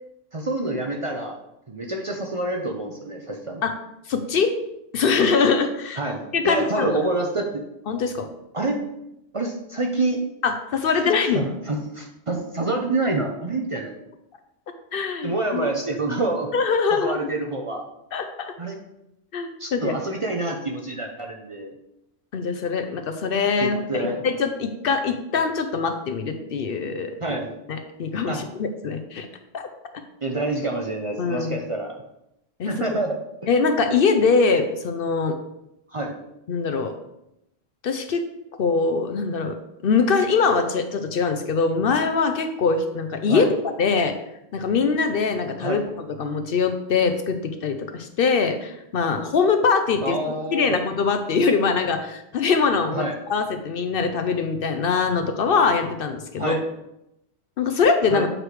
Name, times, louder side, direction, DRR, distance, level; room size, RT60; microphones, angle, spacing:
voice 1, 0.3-1.3 1.7-3.6 6.0-7.6 8.5-8.8 9.3-10.2 11.3-13.9 15.2-16.5 16.9-17.8 18.6-18.8 19.6-21.7 23.6-24.2 27.2-27.5 28.3-28.5 30.2-32.0 32.7-33.2 35.9-36.2 43.3-43.5 45.6-45.8 50.0-50.8 52.9-53.1 56.4-56.6 58.1-58.3, right 2 dB, 35° right, 1 dB, 0.6 m, -27 dB
voice 2, 4.1-4.5 4.9-6.0 6.3-6.9 7.9-8.3 10.4-11.5 14.9-15.7 16.5-17.3 18.1-18.5 19.3-20.0 22.3-27.4 27.7-29.3 29.5-29.7 31.2-31.6 32.6-33.0 33.5-35.4 36.5-36.9 37.8-38.3 38.6-39.6 39.8-43.5 43.8-44.2 44.5-45.8 46.2-50.2 50.5-56.6 57.6-58.3, left 5 dB, 60° left, 7 dB, 0.7 m, -23 dB
7.5 x 4.6 x 3.3 m, 0.84 s
omnidirectional pair, 1.1 m